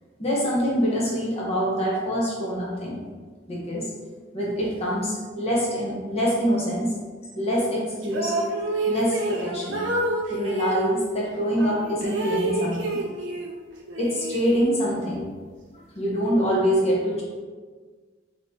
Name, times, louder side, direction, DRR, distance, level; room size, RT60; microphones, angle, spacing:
voice 1, 0.2-3.0 3.5-3.8 4.3-6.9 7.3-8.3 8.9-9.8 10.3-13.0 14.0-15.2 16.0-17.2, equal, 35° left, -5 dB, 0.9 m, -25 dB
sound 1, 8.0-10.9 11.6-13.5 13.9-15.0, right 2 dB, 75° right, 0.6 m, -29 dB
5.2 x 3.0 x 2.8 m, 1.5 s
head